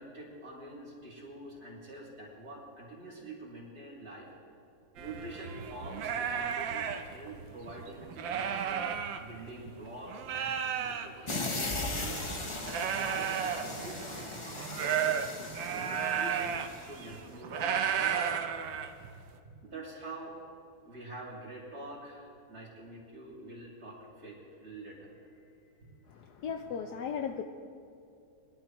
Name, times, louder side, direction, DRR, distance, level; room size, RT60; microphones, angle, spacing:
voice 1, 0.0-4.3 5.0-8.9 9.2-18.2 19.4-20.4 20.8-25.9, right 2 dB, 50° right, -4 dB, 3.6 m, -46 dB
sound 1, 5.0-9.8 10.1-19.3, right 8 dB, 75° right, 1.5 m, -34 dB
sound 2, 11.3-17.2, left 2 dB, 30° left, 0.5 m, -38 dB
voice 2, 26.1-27.4, left 7 dB, 70° left, 6 dB, 1.0 m, -36 dB
22.0 x 12.0 x 3.0 m, 2.5 s
omnidirectional pair, 2.1 m